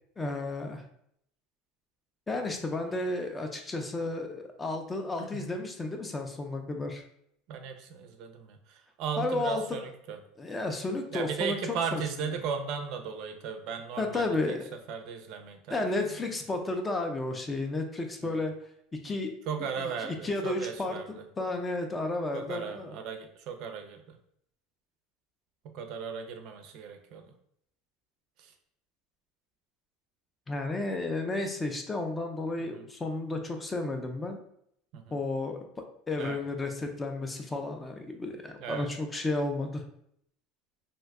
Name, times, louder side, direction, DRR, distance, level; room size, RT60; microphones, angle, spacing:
voice 1, 0.2-0.8 2.3-7.0 9.2-9.6 10.4-12.3 14.0-14.6 15.7-18.5 19.0-19.3 19.8-20.9 21.4-23.0 30.5-34.4 35.1-35.6 36.1-39.8, left 2 dB, 15° left, 4 dB, 0.3 m, -32 dB
voice 2, 5.2-5.5 7.5-10.2 11.1-14.6 14.9-16.2 18.2-18.4 19.5-21.2 22.3-24.2 25.6-27.3 28.4-28.5 32.6-32.8 34.9-35.2 36.1-36.4 38.6-38.9, right 6 dB, 55° right, 6 dB, 0.4 m, -37 dB
2.6 x 2.2 x 3.5 m, 0.71 s
supercardioid pair, 150°, 0 cm